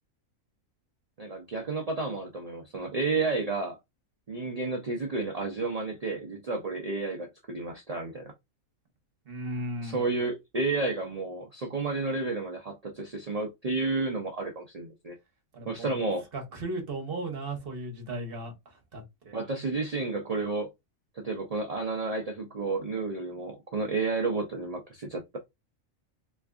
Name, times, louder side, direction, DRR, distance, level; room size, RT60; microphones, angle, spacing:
voice 1, 1.2-3.8 4.3-8.3 9.8-15.1 15.7-16.3 19.3-20.7 21.1-25.4, right 3 dB, 60° right, 0.4 m, -31 dB
voice 2, 9.3-10.1 15.5-15.9 16.3-19.4, right 1 dB, 45° right, 1.2 m, -36 dB
3.3 x 3.2 x 2.4 m
omnidirectional pair, 1.5 m